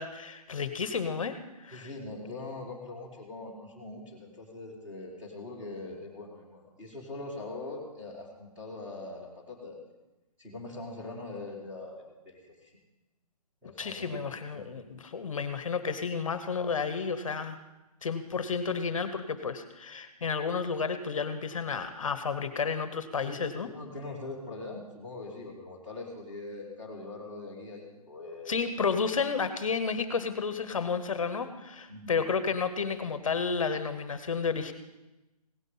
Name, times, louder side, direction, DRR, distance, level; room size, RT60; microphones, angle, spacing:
voice 1, 0.0-1.9 13.8-17.6 18.0-23.7 28.5-34.7, left 5 dB, 55° left, 10 dB, 1.0 m, -31 dB
voice 2, 1.7-9.8 10.4-12.7 13.6-14.2 14.5-14.6 23.1-28.7 31.9-32.2, left 2 dB, 5° right, -5 dB, 1.9 m, -42 dB
17.0 x 8.2 x 5.5 m, 1.0 s
hypercardioid pair, 175°, 20 cm